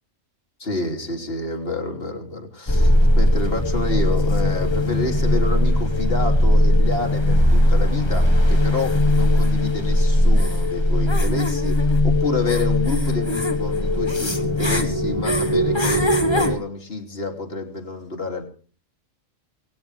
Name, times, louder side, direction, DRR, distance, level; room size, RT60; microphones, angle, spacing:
voice 1, 0.6-18.4, left 2 dB, 45° left, 3 dB, 3.5 m, -29 dB
sound 1, 2.7-16.6, left 1 dB, 20° left, 1.6 m, -19 dB
22.5 x 17.5 x 3.5 m, 0.41 s
omnidirectional pair, 1.3 m